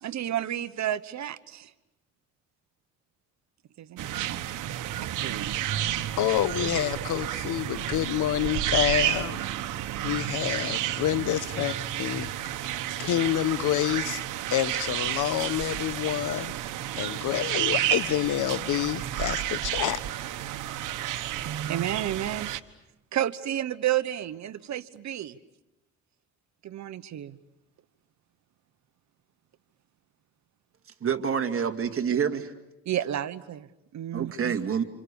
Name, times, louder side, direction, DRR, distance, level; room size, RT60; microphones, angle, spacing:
voice 1, 0.0-1.7 3.8-4.4 5.2-5.5 21.4-22.5 23.1-25.4 26.6-27.4 32.9-34.5, right 11 dB, 65° right, 1.2 m, -31 dB
sound 1, 4.0-22.6, right 12 dB, 85° right, 1.3 m, -31 dB
voice 2, 5.8-9.4 10.0-11.7 12.0-12.3 13.0-14.2 14.5-16.5 17.0-20.0, left 12 dB, 85° left, 1.1 m, -28 dB
voice 3, 31.0-32.5 34.1-34.8, right 7 dB, 45° right, 2.6 m, -27 dB
28.5 x 28.0 x 7.1 m
cardioid pair, 90°, 30 cm